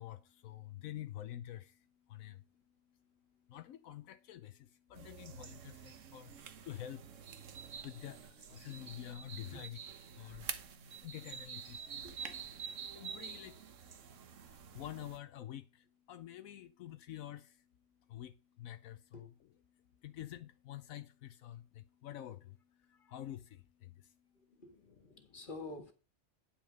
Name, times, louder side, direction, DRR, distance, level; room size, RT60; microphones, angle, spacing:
voice 1, 0.0-9.8 10.1-24.6 24.9-25.5, left 12 dB, 80° left, 1.1 m, -49 dB
sound 1, 4.9-15.2, right 7 dB, 65° right, 1.3 m, -48 dB
voice 2, 24.6-25.9, left 2 dB, 40° left, 2.0 m, -49 dB
10.0 x 6.1 x 5.2 m
omnidirectional pair, 1.4 m